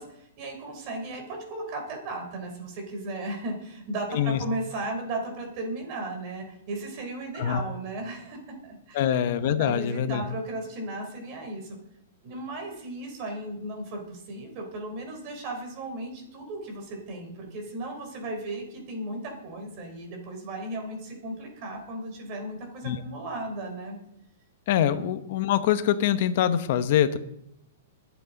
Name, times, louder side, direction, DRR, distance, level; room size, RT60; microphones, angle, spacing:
voice 1, 0.0-9.1 9.6-11.8 12.2-24.0 24.7-25.0, right 2 dB, 35° right, 3 dB, 3.9 m, -36 dB
voice 2, 4.1-4.4 7.4-7.6 8.9-10.2 22.8-23.0 24.7-27.2, left 10 dB, 50° left, 11 dB, 1.1 m, -24 dB
22.0 x 8.4 x 4.1 m, 0.79 s
hypercardioid pair, 155°, 0 cm